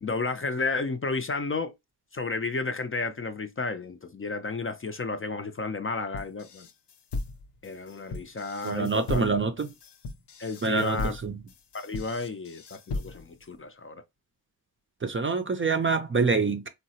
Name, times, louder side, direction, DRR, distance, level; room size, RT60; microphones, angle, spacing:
voice 1, 0.0-1.7 2.1-6.7 7.6-9.3 10.4-11.2 11.7-14.0, left 3 dB, 35° left, 0.4 m, -32 dB
sound 1, 6.1-13.4, left 3 dB, 90° left, 0.6 m, -37 dB
voice 2, 8.6-9.7 10.6-11.4 15.0-16.7, right 4 dB, 30° right, 0.4 m, -26 dB
3.7 x 2.0 x 2.7 m
wide cardioid pair, 60°, 40 cm